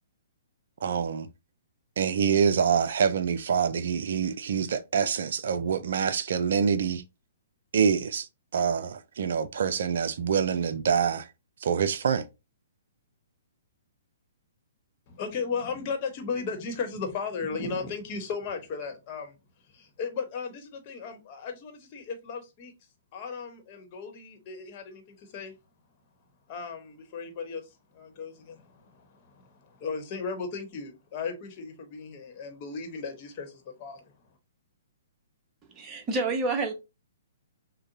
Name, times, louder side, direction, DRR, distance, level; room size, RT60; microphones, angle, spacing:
voice 1, 0.8-1.3 2.0-7.0 7.7-8.3 8.5-11.3 11.6-12.2, right 7 dB, 60° right, 0.4 m, -26 dB
voice 2, 15.1-19.3 19.7-22.7 23.1-25.5 26.5-27.6 27.9-34.1, left 5 dB, 35° left, 1.2 m, -36 dB
voice 3, 35.7-36.7, right 3 dB, 20° right, 1.0 m, -28 dB
6.4 x 2.2 x 2.7 m
figure-of-eight pair, 120°, 0 cm